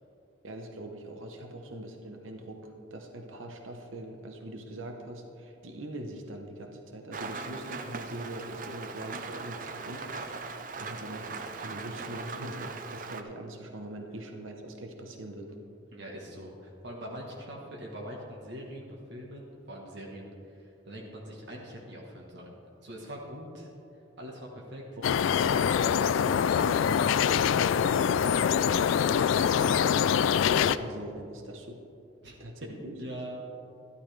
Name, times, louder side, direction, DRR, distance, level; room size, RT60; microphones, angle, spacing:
voice 1, 0.4-15.6 25.0-25.1 28.9-31.8 32.4-33.0, right 1 dB, 90° right, 3 dB, 1.0 m, -42 dB
Rain, 7.1-13.2, right 4 dB, 40° right, 0.5 m, -39 dB
voice 2, 15.9-22.6 22.8-23.7 24.2-24.8 25.5-28.3 32.2-32.4 32.7-33.4, equal, 60° right, -1 dB, 1.3 m, -43 dB
sound 1, 25.0-30.8, left 8 dB, 80° left, 0.3 m, -24 dB
12.5 x 12.5 x 3.3 m, 2.7 s
head